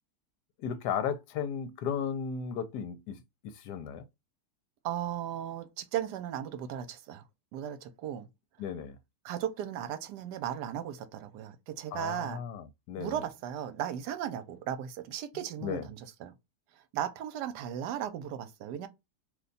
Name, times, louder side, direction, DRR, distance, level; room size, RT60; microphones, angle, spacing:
voice 1, 0.6-3.2 3.6-4.0 8.6-9.0 11.9-13.2 15.6-15.8, left 7 dB, 75° left, 1.1 m, -35 dB
voice 2, 4.8-7.2 7.5-8.3 9.2-12.4 13.0-16.3 16.9-18.9, right 10 dB, 80° right, 1.2 m, -36 dB
2.8 x 2.2 x 3.8 m
omnidirectional pair, 1.8 m